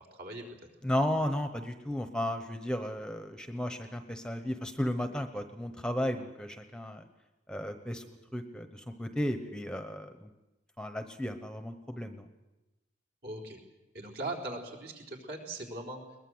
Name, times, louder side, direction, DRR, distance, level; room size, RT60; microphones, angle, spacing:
voice 1, 0.8-7.0 7.5-10.3 10.8-12.2, left 1 dB, 5° left, 7 dB, 1.0 m, -34 dB
voice 2, 13.2-13.6 13.9-16.0, right 2 dB, 60° right, 0 dB, 4.3 m, -39 dB
21.5 x 20.5 x 7.9 m, 1.0 s
head